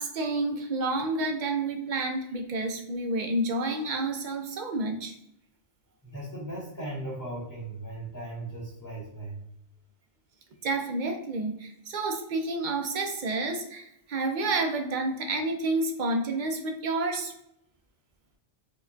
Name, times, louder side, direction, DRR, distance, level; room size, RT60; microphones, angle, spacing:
voice 1, 0.0-5.1 10.6-17.3, right 2 dB, 55° right, 4 dB, 0.6 m, -29 dB
voice 2, 6.0-9.4, right 1 dB, 15° left, -7 dB, 0.8 m, -37 dB
4.9 x 2.2 x 2.6 m, 0.77 s
omnidirectional pair, 1.2 m